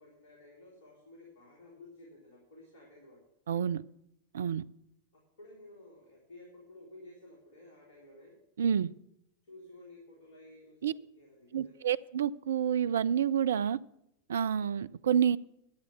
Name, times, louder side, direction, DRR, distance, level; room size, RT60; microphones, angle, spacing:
voice 1, 0.0-3.2 5.4-8.3 9.4-11.8, left 2 dB, 55° left, 3.7 m, -54 dB
voice 2, 3.5-3.8 4.3-4.6 8.6-8.9 10.8-10.9 11.5-13.8 14.3-15.4, right 8 dB, 65° right, 0.3 m, -28 dB
11.5 x 8.2 x 6.8 m
figure-of-eight pair, 90°, 0 cm